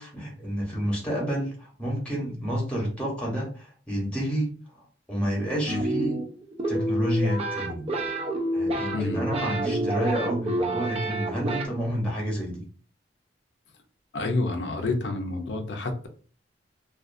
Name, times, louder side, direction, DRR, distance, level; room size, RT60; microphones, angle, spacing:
voice 1, 0.0-6.2 6.7-7.9 8.5-12.6, equal, 5° left, -3 dB, 0.9 m, -29 dB
sound 1, 5.7-11.7, right 1 dB, 35° right, 0.4 m, -29 dB
voice 2, 14.1-16.1, left 2 dB, 70° left, 5 dB, 0.5 m, -28 dB
2.4 x 2.4 x 2.5 m, 0.40 s
head